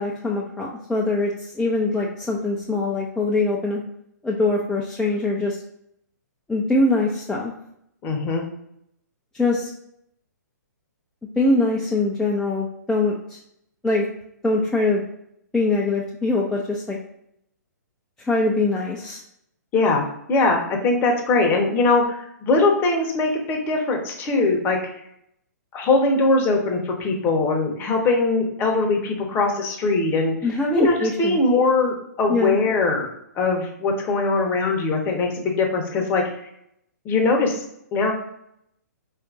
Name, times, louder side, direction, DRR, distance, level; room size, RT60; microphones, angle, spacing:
voice 1, 0.0-3.8 4.2-5.6 6.5-7.5 9.3-9.7 11.4-13.4 13.8-14.0 14.4-15.0 15.5-17.0 18.3-19.2 30.4-31.4 32.3-32.6, left 2 dB, 5° left, -4 dB, 0.3 m, -22 dB
voice 2, 8.0-8.4 19.7-20.0 20.3-24.8 25.7-30.3 30.7-33.1 33.4-36.3 37.0-37.6 37.9-38.1, left 3 dB, 20° left, 2 dB, 0.7 m, -21 dB
4.2 x 2.5 x 2.4 m, 0.75 s
figure-of-eight pair, 120°, 10 cm